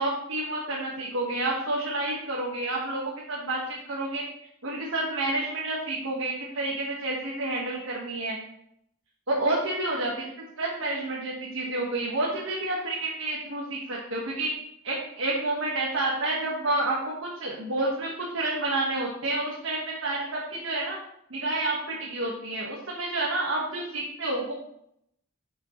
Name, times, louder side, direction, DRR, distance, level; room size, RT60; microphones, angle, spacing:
voice 1, 0.0-4.2 4.6-8.4 9.3-10.1 10.6-14.5 14.8-17.0 17.3-21.0 21.3-24.5, right 2 dB, 70° right, -4 dB, 1.7 m, -29 dB
11.5 x 6.5 x 3.2 m, 0.75 s
head